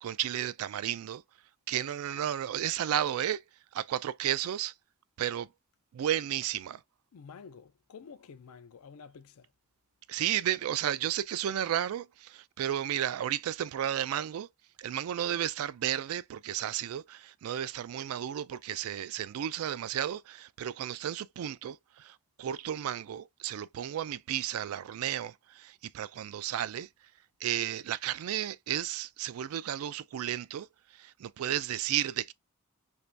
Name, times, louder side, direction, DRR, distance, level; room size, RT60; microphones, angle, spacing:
voice 1, 0.0-1.2 1.7-3.4 3.7-4.7 5.2-5.5 5.9-6.8 10.1-14.5 14.8-26.9 27.4-30.7 31.0-32.3, right 11 dB, 70° right, 0.3 m, -33 dB
voice 2, 7.1-9.5, left 5 dB, 70° left, 0.4 m, -50 dB
2.9 x 2.7 x 3.3 m
head